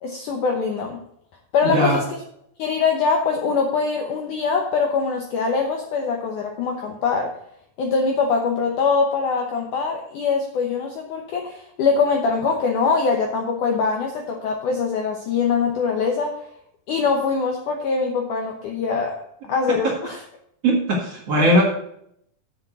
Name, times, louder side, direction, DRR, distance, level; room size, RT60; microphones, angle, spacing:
voice 1, 0.0-1.0 1.5-2.2 2.6-7.3 7.8-16.4 16.9-19.2 19.5-20.2, left 5 dB, 75° left, 2 dB, 1.9 m, -23 dB
voice 2, 1.6-2.0 20.6-21.6, right 1 dB, 50° right, -2 dB, 2.2 m, -19 dB
7.3 x 6.6 x 7.7 m, 0.73 s
omnidirectional pair, 4.8 m